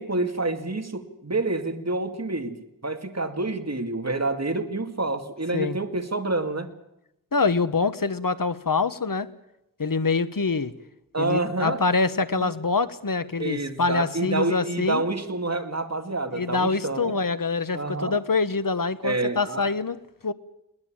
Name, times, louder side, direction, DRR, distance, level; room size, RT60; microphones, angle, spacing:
voice 1, 0.0-6.7 11.1-11.8 12.3-12.5 13.4-17.1 17.7-18.2 19.0-19.7, right 2 dB, 50° right, 6 dB, 2.3 m, -28 dB
voice 2, 7.3-9.3 9.8-10.8 11.2-15.0 16.3-20.3, left 4 dB, 70° left, 14 dB, 1.1 m, -25 dB
20.5 x 19.5 x 8.7 m, 0.86 s
wide cardioid pair, 50°, 34 cm